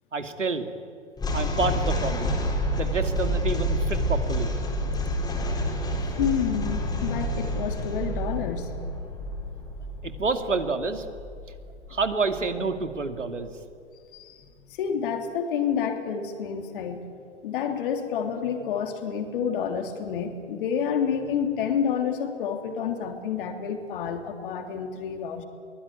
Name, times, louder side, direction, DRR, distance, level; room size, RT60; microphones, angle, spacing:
voice 1, 0.1-0.7 1.3-2.4 2.8-4.5 10.0-11.1 11.9-13.5, right 4 dB, 85° right, 7 dB, 2.4 m, -28 dB
sound 1, 1.2-12.5, equal, 10° left, 3.9 m, -29 dB
voice 2, 6.0-9.0 14.1-17.1 17.4-25.4, left 7 dB, 45° left, 5 dB, 3.3 m, -29 dB
23.0 x 19.5 x 9.6 m, 2.3 s
figure-of-eight pair, 125°, 36 cm